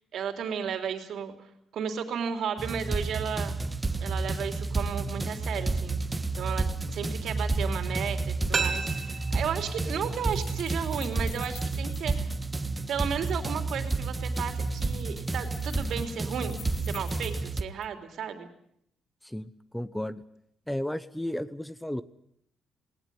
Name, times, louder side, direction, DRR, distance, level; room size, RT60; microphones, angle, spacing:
voice 1, 0.1-1.3 1.7-3.6 4.0-6.0 6.3-12.4 12.9-18.5, right 7 dB, 70° right, 6 dB, 3.2 m, -34 dB
sound 1, 2.6-17.6, right 3 dB, 20° right, 1.4 m, -31 dB
sound 2, 8.5-11.3 11.6-11.7, right 5 dB, 45° right, 3.0 m, -35 dB
sound 3, 10.3-12.4 13.3-17.4 17.8-17.9, left 10 dB, 80° left, 1.6 m, -49 dB
voice 2, 19.2-20.2 20.7-22.0, left 1 dB, 5° left, 14 dB, 0.9 m, -33 dB
19.5 x 18.5 x 9.5 m, 0.72 s
cardioid pair, 90°, 0 cm